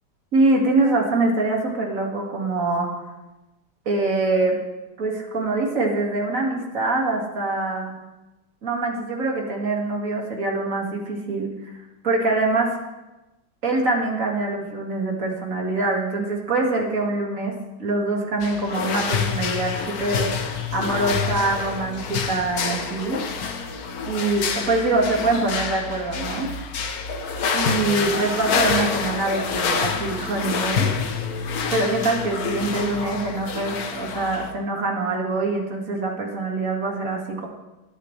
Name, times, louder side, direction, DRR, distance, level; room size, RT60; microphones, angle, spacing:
voice 1, 0.3-2.9 3.9-4.6 5.0-7.9 8.6-11.5 12.0-12.8 13.6-17.5 17.8-20.3 20.7-23.2 24.1-26.5 27.5-30.9 31.7-37.5, right 2 dB, 40° right, 0 dB, 2.4 m, -24 dB
sound 1, 18.4-34.5, left 6 dB, 55° left, 1.3 m, -27 dB
21.0 x 9.9 x 3.3 m, 1.1 s
omnidirectional pair, 2.1 m